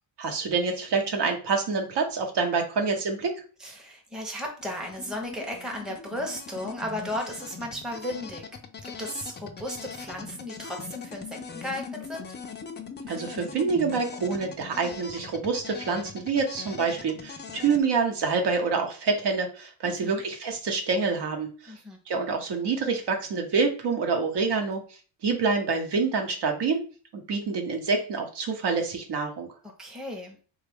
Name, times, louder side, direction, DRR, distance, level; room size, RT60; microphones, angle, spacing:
voice 1, 0.2-3.3 13.1-21.7 22.1-24.8 25.2-26.8 27.1-29.5, right 4 dB, 60° right, 4 dB, 0.9 m, -27 dB
voice 2, 3.6-8.4 9.0-12.2 19.8-20.2 21.7-22.0 29.8-30.4, left 1 dB, ahead, 1 dB, 0.8 m, -35 dB
sound 1, 4.6-17.8, left 5 dB, 25° left, 0.4 m, -41 dB
3.4 x 2.4 x 3.4 m, 0.38 s
cardioid pair, 110°, 47 cm